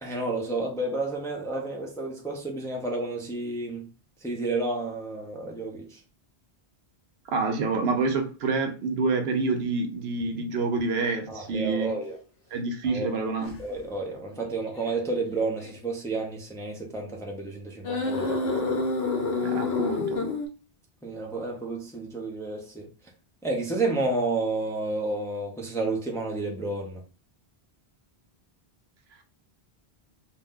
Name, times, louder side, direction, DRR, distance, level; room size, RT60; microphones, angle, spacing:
voice 1, 0.0-3.9 4.2-6.0 11.3-12.2 12.9-13.1 13.6-18.7 21.0-22.9 23.4-27.0, right 2 dB, 5° left, 0.5 m, -31 dB
voice 2, 7.3-11.9 12.5-13.5 19.4-20.2, right 4 dB, 75° right, 0.9 m, -27 dB
sound 1, 11.0-11.2 11.9-12.0 13.4-13.6 14.7-14.9 15.6-15.7 17.8-20.5, left 3 dB, 70° left, 1.0 m, -28 dB
2.6 x 2.2 x 3.6 m
omnidirectional pair, 1.1 m